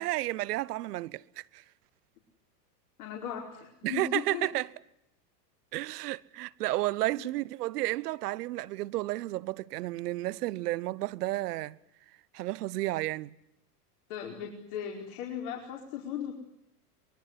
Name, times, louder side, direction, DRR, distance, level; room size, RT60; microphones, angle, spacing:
voice 1, 0.0-1.6 3.8-4.7 5.7-11.8 12.3-13.4, right 17 dB, 70° right, 1.1 m, -32 dB
voice 2, 3.0-4.5 14.1-16.3, left 9 dB, 65° left, 4.9 m, -37 dB
24.5 x 22.5 x 9.7 m
hypercardioid pair, 110°, 48 cm